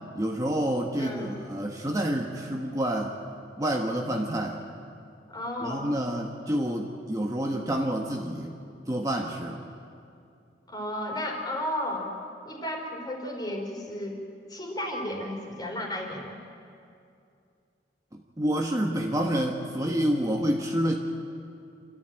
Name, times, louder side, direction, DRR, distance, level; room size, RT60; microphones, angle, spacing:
voice 1, 0.1-3.1 3.6-4.6 5.6-8.6 8.9-9.6 18.1-21.0, right 1 dB, 20° right, 1 dB, 1.2 m, -28 dB
voice 2, 1.0-1.3 5.3-5.9 10.7-12.1 12.4-14.2 14.5-16.4, left 1 dB, 25° left, 1 dB, 3.5 m, -33 dB
27.0 x 13.5 x 9.0 m, 2.5 s
head